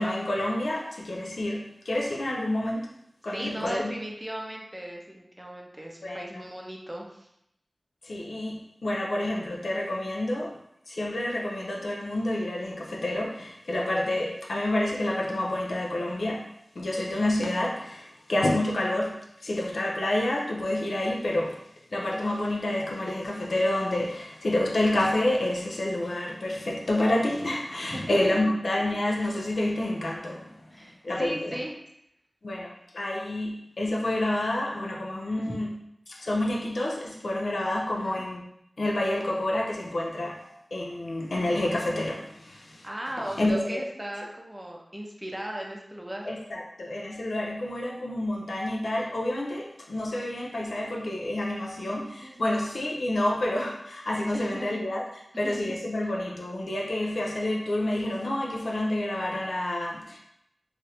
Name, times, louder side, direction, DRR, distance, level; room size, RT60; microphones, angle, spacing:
voice 1, 0.0-2.9 3.2-4.0 6.0-6.4 8.0-10.6 10.9-16.5 16.8-21.6 21.9-30.5 30.8-31.6 32.4-35.7 36.1-38.5 38.8-40.4 40.7-42.9 43.4-43.8 46.2-55.0 55.4-60.2, left 1 dB, 80° left, -2 dB, 0.4 m, -28 dB
voice 2, 3.3-7.3 27.9-28.4 30.7-31.7 35.5-35.6 37.9-38.2 42.8-46.3 52.2-52.6 54.3-54.8 55.3-55.8 56.0-56.1, right 1 dB, 15° right, -1 dB, 0.5 m, -37 dB
3.1 x 2.4 x 2.8 m, 0.78 s
wide cardioid pair, 70°, 0 cm